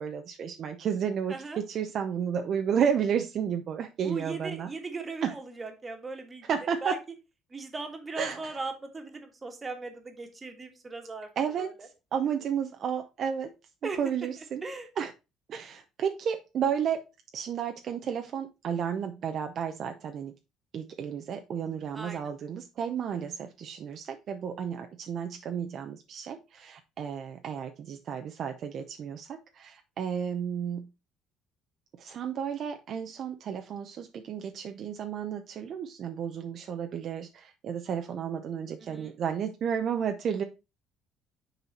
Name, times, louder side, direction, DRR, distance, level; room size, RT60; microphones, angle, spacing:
voice 1, 0.0-4.7 5.2-5.3 6.5-6.9 8.2-8.5 11.4-13.5 14.0-14.6 15.0-15.1 15.5-17.0 17.3-20.3 20.7-30.9 32.0-40.4, right 7 dB, 50° right, 6 dB, 0.6 m, -32 dB
voice 2, 1.3-1.6 4.0-6.5 6.8-7.0 7.5-11.3 11.6-11.9 13.8-14.0 14.6-14.9 21.9-22.3 38.8-39.2, right 3 dB, 20° right, 5 dB, 1.5 m, -38 dB
6.9 x 4.1 x 4.2 m, 0.27 s
cardioid pair, 125°, 0 cm